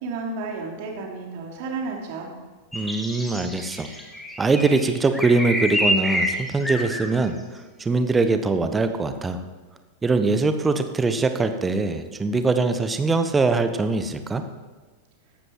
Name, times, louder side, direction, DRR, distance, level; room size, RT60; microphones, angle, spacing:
voice 1, 0.0-2.3, right 3 dB, 50° right, 0 dB, 3.2 m, -32 dB
sound 1, 2.7-7.0, equal, 5° left, 2.4 m, -27 dB
voice 2, 2.7-3.9 4.4-9.4 10.0-14.4, right 3 dB, 15° right, 8 dB, 1.1 m, -22 dB
16.0 x 12.0 x 4.8 m, 1.3 s
figure-of-eight pair, 90°, 0 cm